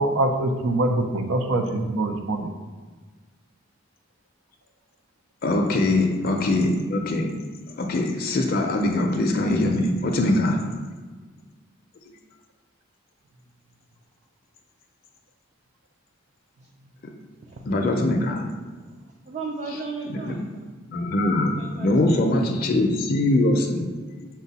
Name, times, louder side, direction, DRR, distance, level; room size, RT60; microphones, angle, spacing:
voice 1, 0.0-2.5, right 2 dB, 90° right, 4 dB, 0.5 m, -24 dB
voice 2, 5.4-7.3 7.7-10.7 17.0-17.1 17.7-18.5 20.1-20.3 20.9-24.3, left 2 dB, 45° left, 3 dB, 0.4 m, -22 dB
voice 3, 19.3-20.7 21.5-22.4, right 4 dB, 35° right, 0 dB, 0.4 m, -36 dB
6.1 x 2.2 x 4.0 m, 1.4 s
head